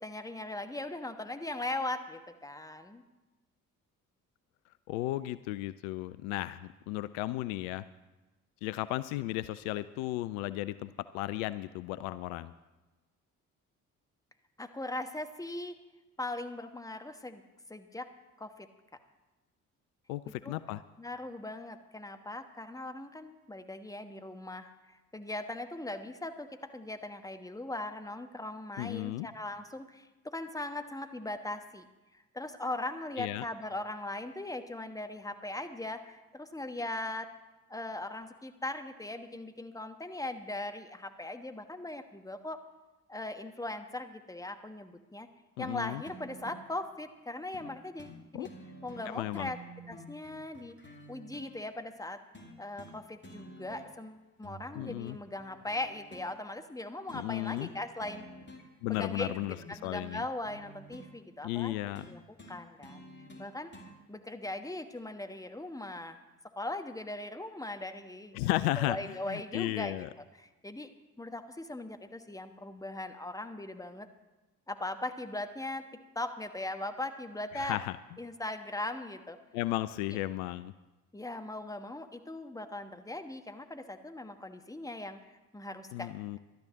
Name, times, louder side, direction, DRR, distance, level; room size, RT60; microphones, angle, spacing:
voice 1, 0.0-3.0 14.6-15.8 16.2-17.4 17.7-18.1 18.4-18.7 20.4-20.5 21.0-31.9 32.1-37.3 37.7-42.6 43.1-45.3 45.6-48.5 48.8-49.6 49.9-50.7 51.1-52.2 52.6-58.2 58.9-61.7 62.1-62.2 62.5-63.0 63.4-63.7 64.1-66.2 66.6-68.5 68.8-70.0 70.4-70.9 71.2-74.1 74.7-75.8 76.1-77.8 78.2-79.4 81.1-86.1, left 2 dB, 10° left, 7 dB, 1.3 m, -39 dB
voice 2, 4.9-7.8 8.6-12.5 20.1-20.8 28.8-29.3 33.2-33.4 45.6-46.0 48.3-48.5 49.1-49.5 54.8-55.2 57.1-57.7 58.8-59.6 59.8-60.2 61.4-62.1 68.3-70.1 77.5-78.0 79.5-80.7 85.9-86.4, left 16 dB, 70° left, 15 dB, 0.5 m, -34 dB
sound 1, 46.1-46.7 47.5-47.7 48.0-48.2 48.4-51.5 52.3-53.0 53.2-54.1 54.4-56.3 57.1-57.3 57.6-57.8 58.0-58.7 58.9-61.1 61.9-63.9 65.0-65.1, right 1 dB, 25° left, 2.5 m, -50 dB
12.0 x 10.5 x 6.4 m, 1.1 s
figure-of-eight pair, 45°, 44 cm